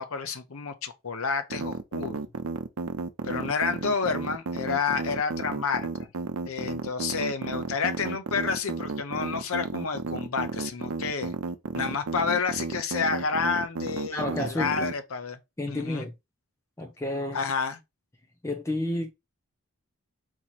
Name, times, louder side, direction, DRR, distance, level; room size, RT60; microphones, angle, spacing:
voice 1, 0.0-2.3 3.2-6.1 6.4-11.3 11.7-15.4 15.7-16.1 17.3-17.8, left 5 dB, 75° left, 0.7 m, -30 dB
sound 1, 1.5-14.9, right 4 dB, 80° right, 0.6 m, -32 dB
voice 2, 14.1-14.9 15.6-16.1 16.8-17.4 18.4-19.1, left 1 dB, 15° left, 0.5 m, -30 dB
4.4 x 3.0 x 4.1 m
head